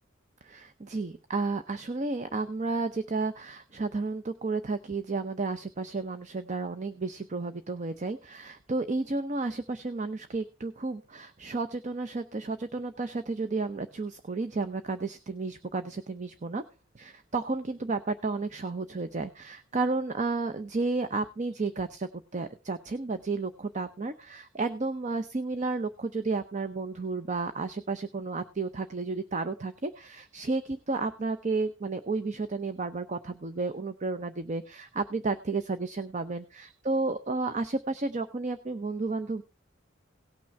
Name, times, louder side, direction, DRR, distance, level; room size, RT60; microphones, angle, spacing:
voice 1, 0.4-16.6 16.9-39.4, right 3 dB, 40° right, 10 dB, 0.6 m, -32 dB
18.0 x 6.1 x 4.3 m, 0.31 s
head